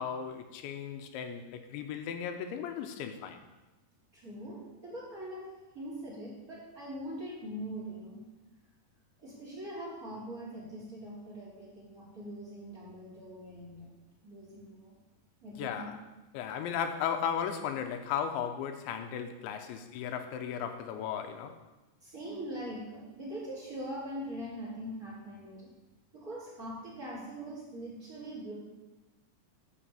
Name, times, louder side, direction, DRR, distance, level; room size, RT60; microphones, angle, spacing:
voice 1, 0.0-3.4 15.6-16.0 16.3-21.6, left 8 dB, 85° left, 3.1 m, -36 dB
voice 2, 4.1-5.4 5.7-8.2 9.2-13.9 14.2-14.9 15.4-15.9 22.0-25.7 26.1-28.5, right 1 dB, 20° right, 4.2 m, -42 dB
12.5 x 6.0 x 7.4 m
omnidirectional pair, 5.2 m